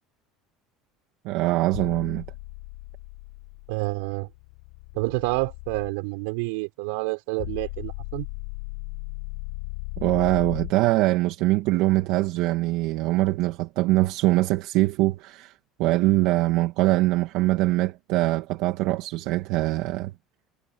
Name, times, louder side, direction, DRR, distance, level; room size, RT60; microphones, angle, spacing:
voice 1, 1.2-2.2 10.0-20.1, right 18 dB, 65° right, 2.1 m, -23 dB
sound 1, 1.7-5.9 7.4-10.7, left 34 dB, 85° left, 6.1 m, -37 dB
voice 2, 3.7-4.3 4.9-8.3, right 26 dB, 85° right, 6.3 m, -28 dB
cardioid pair, 145°, 0 cm